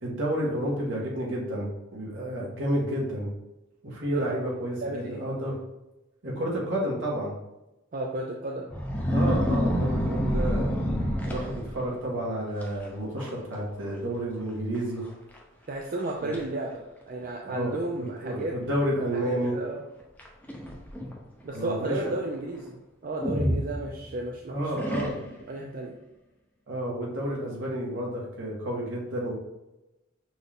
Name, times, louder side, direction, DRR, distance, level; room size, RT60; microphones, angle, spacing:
voice 1, 0.0-3.3 3.8-5.6 6.2-7.3 9.1-10.7 11.2-15.0 16.2-16.3 17.4-19.6 21.5-22.0 24.5-25.1 26.7-29.3, right 1 dB, 70° right, -4 dB, 1.5 m, -30 dB
voice 2, 4.1-4.5 4.8-5.2 7.9-8.7 15.7-18.5 19.1-19.8 21.4-24.8 25.5-26.0, right 2 dB, 45° right, 0 dB, 0.4 m, -33 dB
sound 1, 8.7-12.0 12.6-12.9 13.2-13.6 13.9-14.0 14.8-14.9 15.4-15.5 16.0-16.4 17.2-17.3 20.2-21.2 23.2-24.3 24.8-25.5, equal, 10° left, 0.6 m, -28 dB
6.0 x 2.6 x 3.4 m, 0.96 s
head